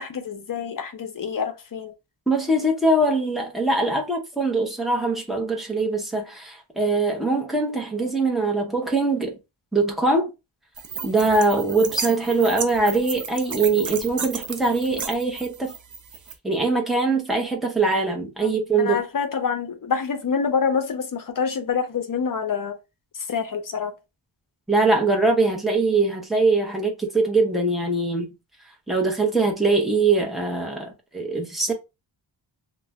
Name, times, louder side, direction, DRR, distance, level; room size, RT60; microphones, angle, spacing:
voice 1, 0.0-1.9 18.4-22.8 23.3-23.9, left 6 dB, 45° left, 0.6 m, -27 dB
voice 2, 2.3-9.4 9.7-10.3 11.0-15.7 16.4-19.0 24.7-28.3 28.9-31.7, right 3 dB, ahead, 0.6 m, -22 dB
sound 1, 10.8-16.3, right 5 dB, 40° right, 0.5 m, -34 dB
2.4 x 2.2 x 3.3 m
wide cardioid pair, 135°, 46 cm